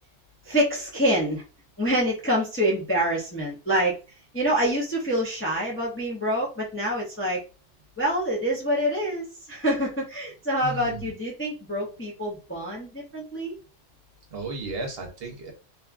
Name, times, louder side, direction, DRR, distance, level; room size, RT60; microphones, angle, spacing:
voice 1, 0.4-1.4 1.8-4.0 4.3-7.4 8.0-13.6, equal, 15° left, -3 dB, 0.4 m, -26 dB
voice 2, 10.6-11.1 14.3-15.5, right 3 dB, 60° right, 2 dB, 0.9 m, -34 dB
2.7 x 2.3 x 2.4 m, 0.32 s
omnidirectional pair, 1.2 m